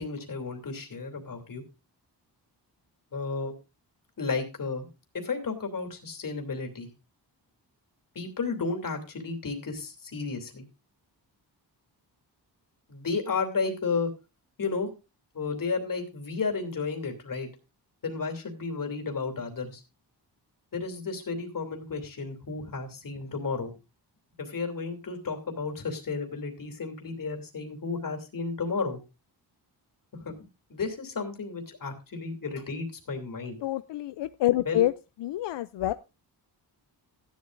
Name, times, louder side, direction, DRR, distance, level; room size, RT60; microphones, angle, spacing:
voice 1, 0.0-1.6 3.1-3.5 4.2-4.9 5.2-6.9 8.1-10.7 12.9-14.1 14.6-14.9 15.3-17.5 18.0-19.8 20.7-23.7 24.4-29.0 30.2-30.4 30.7-33.6 34.6-34.8, left 4 dB, 50° left, 3 dB, 2.9 m, -33 dB
voice 2, 33.6-34.9 35.2-35.9, left 14 dB, 90° left, 13 dB, 0.5 m, -27 dB
15.0 x 11.0 x 2.5 m, 0.28 s
wide cardioid pair, 120°, 41 cm